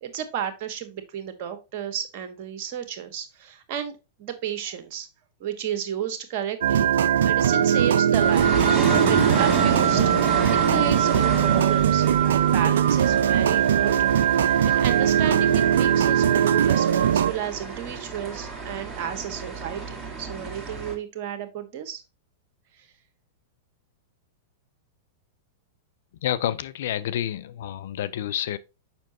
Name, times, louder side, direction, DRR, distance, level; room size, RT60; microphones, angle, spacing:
voice 1, 0.0-5.1 5.4-6.9 7.2-8.5 8.8-10.0 10.5-22.0, right 9 dB, 50° right, 1.4 m, -32 dB
sound 1, 6.6-17.3, right 9 dB, 70° right, 0.3 m, -20 dB
sound 2, 8.2-21.0, right 4 dB, 20° right, 1.9 m, -31 dB
voice 2, 26.2-28.6, left 11 dB, 65° left, 0.5 m, -29 dB
7.0 x 5.7 x 2.8 m
hypercardioid pair, 100°, 0 cm